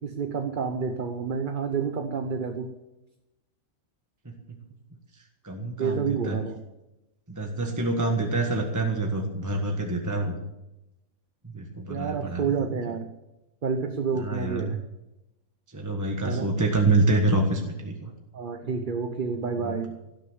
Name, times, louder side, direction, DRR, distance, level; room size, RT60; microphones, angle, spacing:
voice 1, 0.0-2.7 5.8-6.6 11.9-13.1 13.6-14.8 16.3-16.5 18.3-19.9, right 5 dB, 40° right, 5 dB, 1.0 m, -29 dB
voice 2, 5.1-6.4 7.3-10.4 11.4-12.4 14.1-14.7 15.7-18.1 19.6-19.8, right 2 dB, 15° right, 2 dB, 1.3 m, -26 dB
17.0 x 6.7 x 8.0 m, 0.95 s
omnidirectional pair, 1.4 m